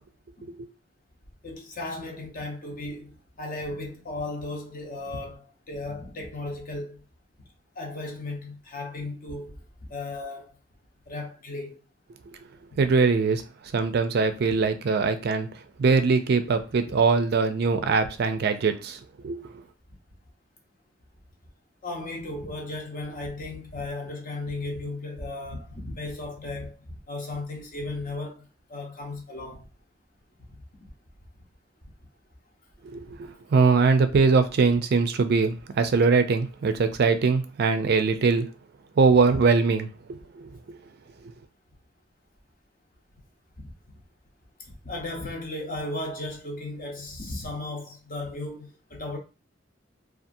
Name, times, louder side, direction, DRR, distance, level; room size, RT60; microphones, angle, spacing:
voice 1, 1.4-7.0 7.8-9.6 9.9-10.5 11.1-11.8 21.8-29.6 44.6-49.2, left 2 dB, 45° left, 0.8 m, -35 dB
voice 2, 12.8-13.4 13.7-15.5 15.8-19.5 32.8-33.2 33.5-38.5 39.0-40.8, right 4 dB, 55° right, 0.4 m, -22 dB
2.7 x 2.4 x 2.6 m
head